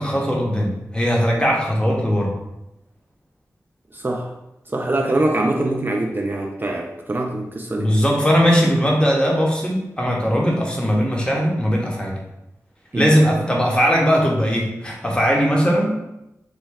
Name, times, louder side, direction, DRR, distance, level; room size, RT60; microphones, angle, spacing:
voice 1, 0.0-2.3 7.8-12.2 12.9-16.0, equal, 15° left, -1 dB, 0.8 m, -19 dB
voice 2, 3.9-4.3 4.7-8.0 12.9-13.2, right 2 dB, 35° right, 1 dB, 0.3 m, -23 dB
3.1 x 2.2 x 3.4 m, 0.89 s
wide cardioid pair, 55°, 6 cm